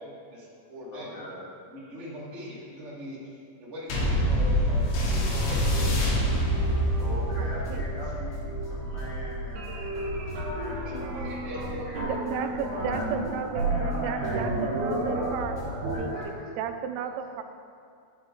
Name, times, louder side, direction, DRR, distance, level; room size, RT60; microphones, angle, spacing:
voice 1, 0.0-1.2 1.7-6.0 10.8-10.9 11.2-12.2, equal, 30° right, -7 dB, 1.3 m, -41 dB
voice 2, 0.9-1.4 7.0-11.1 11.9-15.3 15.9-16.5, left 1 dB, 70° left, -7 dB, 3.7 m, -41 dB
sound 1, 3.9-12.7 13.4-13.5, equal, 90° left, 3.3 m, -27 dB
sound 2, 5.7-16.2, equal, 35° left, 1.8 m, -37 dB
voice 3, 7.3-7.8 12.0-15.6 16.0-17.4, right 8 dB, 90° right, 8 dB, 2.6 m, -34 dB
sound 3, 9.6-16.0, right 2 dB, 70° right, 1.9 m, -32 dB
10.5 x 6.0 x 3.7 m, 2.4 s
omnidirectional pair, 4.5 m